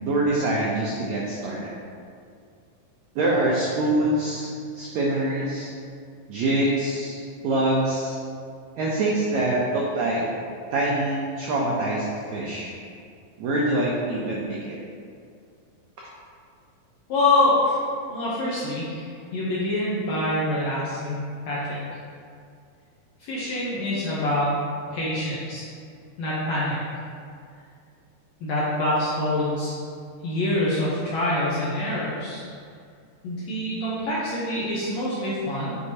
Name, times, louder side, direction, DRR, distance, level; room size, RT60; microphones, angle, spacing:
voice 1, 0.0-1.7 3.1-5.7 6.3-8.2 8.8-10.2 10.7-12.7 13.4-14.8, right 1 dB, 90° right, -4 dB, 1.6 m, -25 dB
voice 2, 17.1-17.8 18.1-21.8 23.2-24.5 24.9-25.7 26.2-26.8 28.4-29.7 30.2-32.4 33.2-35.8, left 1 dB, 75° left, -8 dB, 1.7 m, -25 dB
8.2 x 4.6 x 2.8 m, 2.3 s
omnidirectional pair, 4.1 m